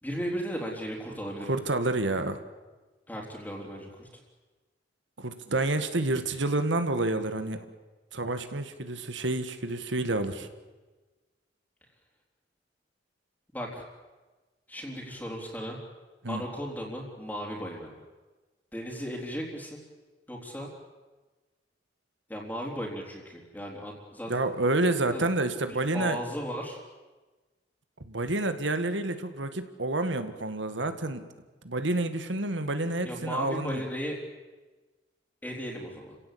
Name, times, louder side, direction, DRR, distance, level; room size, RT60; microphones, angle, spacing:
voice 1, 0.0-1.5 3.1-4.1 13.5-13.8 14.7-15.8 16.3-18.0 18.7-19.8 20.3-20.7 22.3-24.3 25.1-25.2 25.9-26.8 33.0-34.2 35.4-36.2, equal, 10° left, -2 dB, 3.8 m, -36 dB
voice 2, 1.5-2.4 5.2-7.6 8.1-10.5 16.2-16.4 24.3-26.2 28.0-31.2 31.6-33.8, right 2 dB, 85° right, 9 dB, 1.9 m, -29 dB
30.0 x 17.0 x 8.7 m, 1.3 s
head